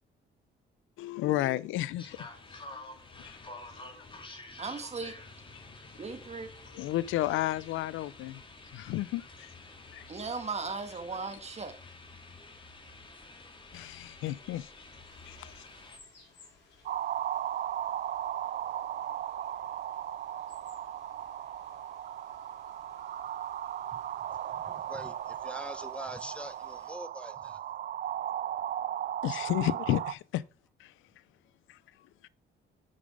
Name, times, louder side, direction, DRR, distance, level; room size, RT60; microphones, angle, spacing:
voice 1, 1.0-2.6 3.2-3.4 5.5-5.6 6.7-8.4 8.7-9.5 9.9-10.0 13.7-14.7 15.3-15.6 29.2-30.4 30.8-30.9 31.7-31.8 32.2-32.3, left 15 dB, 85° left, 0.4 m, -32 dB
sound 1, 2.0-16.0, left 2 dB, 25° left, 2.0 m, -49 dB
voice 2, 4.6-5.1 6.0-6.5 10.1-11.7, right 4 dB, 35° right, 1.6 m, -37 dB
sound 2, 15.1-26.9, left 3 dB, 60° left, 4.4 m, -61 dB
sound 3, 16.9-30.1, right 11 dB, 50° right, 0.4 m, -36 dB
voice 3, 23.9-27.6, equal, 5° left, 0.8 m, -44 dB
8.6 x 5.3 x 4.9 m
cardioid pair, 90°, 20 cm